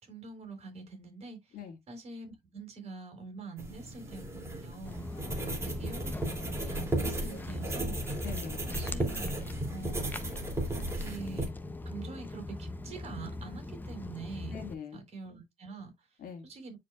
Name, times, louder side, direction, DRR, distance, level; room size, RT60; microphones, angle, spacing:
voice 1, 0.0-1.6 1.9-5.1 5.6-6.1 6.4-8.0 8.7-9.4 9.7-10.3 10.7-11.5 11.8-14.6 14.9-16.2 16.4-16.8, right 4 dB, 40° right, 3.7 m, -45 dB
sound 1, 3.6-11.5, right 1 dB, 15° right, 2.5 m, -35 dB
Walk footsteps, 4.8-14.7, left 2 dB, 10° left, 0.6 m, -41 dB
voice 2, 5.1-5.6 7.3-7.6 8.2-8.6 14.5-15.0 16.2-16.5, left 7 dB, 70° left, 2.1 m, -44 dB
9.8 x 4.8 x 2.3 m
cardioid pair, 170°, 15 cm